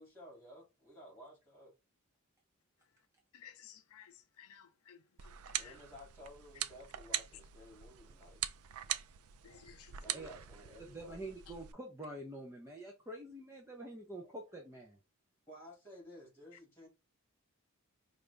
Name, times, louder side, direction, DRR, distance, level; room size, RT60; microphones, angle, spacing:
voice 1, 0.0-1.7 5.6-8.9 10.0-11.3 14.2-14.3 15.5-16.9, equal, 10° left, 2.2 m, -55 dB
voice 2, 3.3-4.1 4.4-5.3 5.6-5.7 9.4-9.9, left 9 dB, 75° left, 0.4 m, -56 dB
sound 1, 5.2-11.7, right 11 dB, 80° right, 0.4 m, -42 dB
voice 3, 10.9-15.0, right 1 dB, 10° right, 0.5 m, -46 dB
4.8 x 2.5 x 3.3 m
head